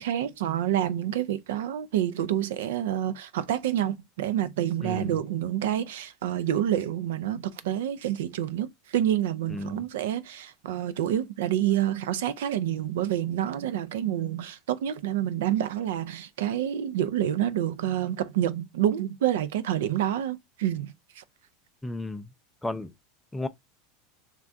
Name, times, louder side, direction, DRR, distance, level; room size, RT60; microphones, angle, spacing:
voice 1, 0.0-21.2, right 11 dB, 80° right, 0.4 m, -28 dB
voice 2, 4.8-5.1 9.5-9.8 21.8-22.3 22.6-22.9 23.3-23.5, left 2 dB, 5° left, 0.4 m, -33 dB
3.4 x 2.2 x 2.5 m
supercardioid pair, 120°, 0 cm